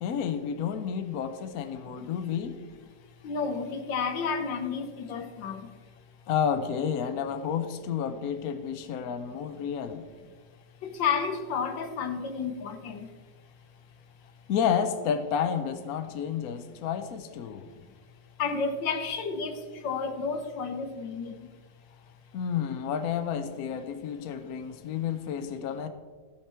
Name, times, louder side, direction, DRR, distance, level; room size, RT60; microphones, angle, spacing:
voice 1, 0.0-2.6 6.3-10.0 14.5-17.7 22.3-25.9, left 8 dB, 65° left, 1.0 m, -30 dB
voice 2, 3.2-5.6 10.8-13.1 18.4-19.6 19.8-21.4, left 5 dB, 80° left, 1.6 m, -31 dB
15.0 x 6.0 x 4.4 m
omnidirectional pair, 2.0 m